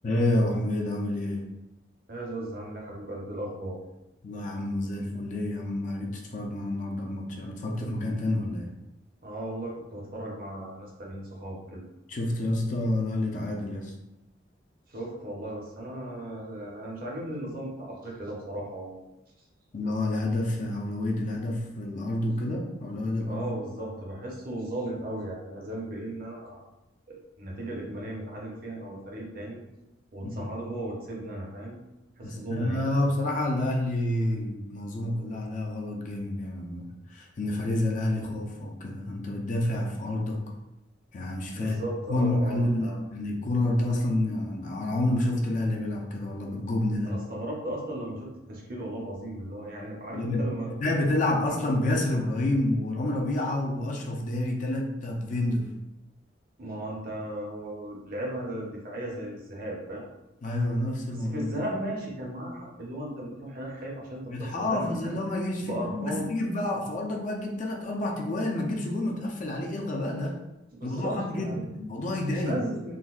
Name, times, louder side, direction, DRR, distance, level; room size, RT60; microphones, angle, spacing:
voice 1, 0.0-1.5 4.2-8.7 12.1-13.9 19.7-23.5 30.2-30.5 32.2-40.4 41.1-41.8 42.1-47.2 50.1-55.7 60.4-61.5 64.3-70.4 70.8-72.6, left 1 dB, 40° left, 0 dB, 0.4 m, -29 dB
voice 2, 2.1-3.8 9.2-11.8 14.9-19.0 23.3-26.6 27.1-29.6 30.1-31.8 32.2-32.9 41.5-43.0 47.1-50.7 56.6-60.1 61.1-65.1 65.6-66.3 70.7-71.6 72.4-72.9, right 1 dB, 50° right, -2 dB, 0.7 m, -36 dB
3.8 x 2.1 x 2.4 m, 0.93 s
head